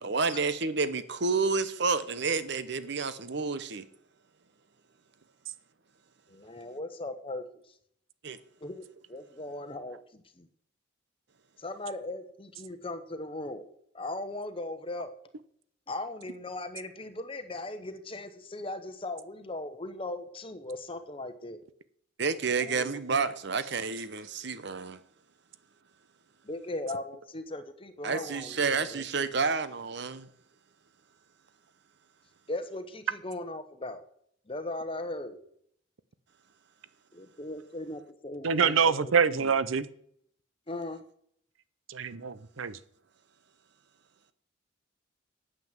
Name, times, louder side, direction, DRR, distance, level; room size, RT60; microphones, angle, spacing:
voice 1, 0.0-3.8 8.2-8.4 22.2-25.0 28.0-30.3, right 4 dB, 60° right, 0.9 m, -30 dB
voice 2, 6.3-7.8 8.6-10.5 11.6-13.7 13.9-15.1 15.9-21.6 22.6-23.0 26.4-29.0 32.5-34.0 34.5-35.4 37.1-39.5 40.7-41.0, left 2 dB, 25° left, 1.0 m, -38 dB
voice 3, 38.4-39.9 41.9-42.8, right 6 dB, 85° right, 0.7 m, -25 dB
9.3 x 7.7 x 7.4 m
head